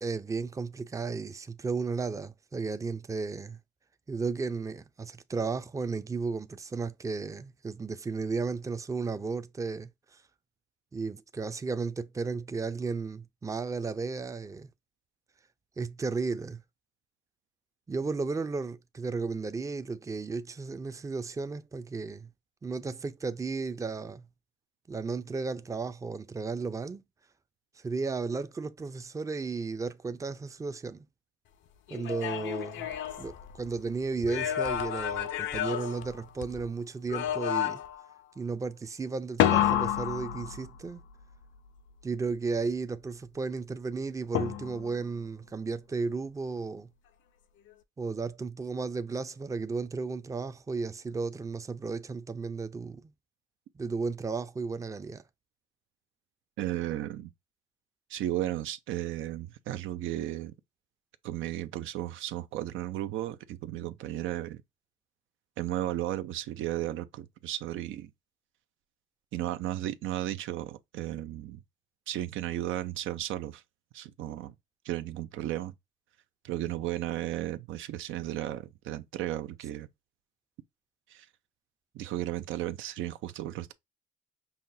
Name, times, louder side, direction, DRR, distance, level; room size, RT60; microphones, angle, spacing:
voice 1, 0.0-3.6 4.1-9.9 10.9-14.7 15.8-16.6 17.9-22.3 22.6-24.2 24.9-27.0 27.8-31.0 31.9-32.9 33.2-37.8 38.4-41.0 42.0-46.9 48.0-53.1 53.8-55.2, right 4 dB, 15° right, 0.4 m, -34 dB
sound 1, 31.9-33.8 34.2-36.6 37.1-38.1 39.4-41.0 44.3-45.0, left 11 dB, 75° left, 0.5 m, -30 dB
voice 2, 56.6-57.3 58.1-60.5 61.2-64.6 65.6-68.1 69.3-71.6 72.1-73.6 73.9-74.5 74.8-75.7 76.4-79.9 81.1-81.3 81.9-83.7, right 13 dB, 80° right, 0.5 m, -34 dB
5.6 x 2.1 x 2.6 m
cardioid pair, 90°, 20 cm